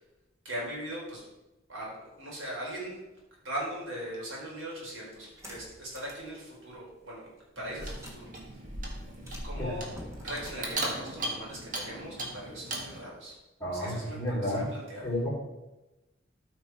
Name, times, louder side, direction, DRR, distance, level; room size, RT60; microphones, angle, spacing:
voice 1, 0.4-1.3 1.7-3.0 3.4-7.3 7.6-8.3 9.4-13.4 13.7-15.1, right 1 dB, 90° right, -4 dB, 3.9 m, -40 dB
sound 1, 5.3-6.3 6.7-6.8 7.7-12.0, equal, 15° right, 1.6 m, -43 dB
Clock, 7.6-13.0, right 2 dB, 45° right, 1.8 m, -38 dB
voice 2, 13.6-14.6 15.0-15.3, left 1 dB, 15° left, -5 dB, 3.4 m, -31 dB
13.0 x 5.4 x 4.7 m, 1.0 s
head